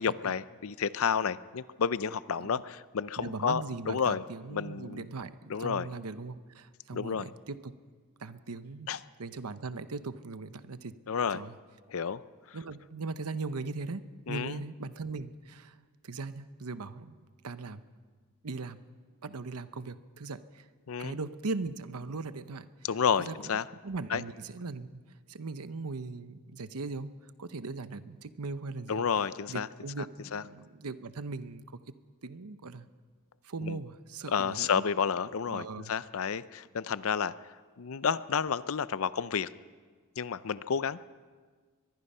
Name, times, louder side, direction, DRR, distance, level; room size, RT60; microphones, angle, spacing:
voice 1, 0.0-4.2 4.5-5.0 5.5-5.9 6.9-7.3 8.9-9.0 11.1-11.4 11.9-12.2 12.5-12.6 14.3-14.6 20.9-21.2 22.8-23.6 24.1-24.2 28.9-29.7 30.0-30.1 30.3-30.4 33.6-33.8 34.3-39.5 40.2-41.0, left 6 dB, 65° left, 16 dB, 0.5 m, -31 dB
voice 2, 3.2-7.7 8.2-8.9 9.2-10.9 11.3-11.5 12.5-15.8 16.0-17.2 17.4-17.8 18.4-18.8 19.2-20.7 21.0-22.7 23.2-23.6 23.8-25.0 25.3-29.0 29.5-31.8 32.2-32.9 33.4-34.8 35.5-35.9, right 3 dB, 90° right, 12 dB, 0.9 m, -39 dB
23.5 x 21.5 x 5.6 m, 1.5 s
head